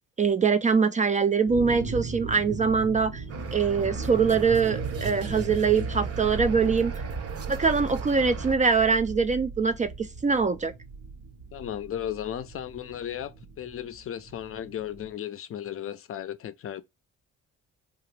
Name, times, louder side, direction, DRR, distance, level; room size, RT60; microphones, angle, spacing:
voice 1, 0.2-3.2 3.5-6.9 7.5-10.7, right 5 dB, 25° right, 0.4 m, -23 dB
sound 1, 1.4-15.1, right 4 dB, 85° right, 1.1 m, -37 dB
sound 2, 3.3-8.6, right 4 dB, 55° right, 0.7 m, -37 dB
voice 2, 11.5-16.8, left 10 dB, 45° left, 0.5 m, -35 dB
2.8 x 2.4 x 3.2 m
cardioid pair, 90°, 30 cm